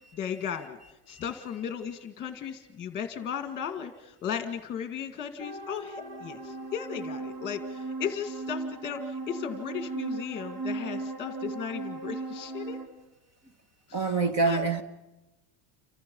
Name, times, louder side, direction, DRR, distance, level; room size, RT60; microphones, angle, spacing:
voice 1, 0.1-0.8 1.1-12.8 13.9-14.1 14.4-14.7, left 8 dB, 20° left, 1.9 m, -36 dB
sound 1, 5.4-12.9, right 3 dB, 50° right, 3.9 m, -37 dB
voice 2, 13.9-14.8, right 4 dB, 30° right, 2.0 m, -26 dB
29.5 x 26.5 x 5.5 m
cardioid pair, 170°, 48 cm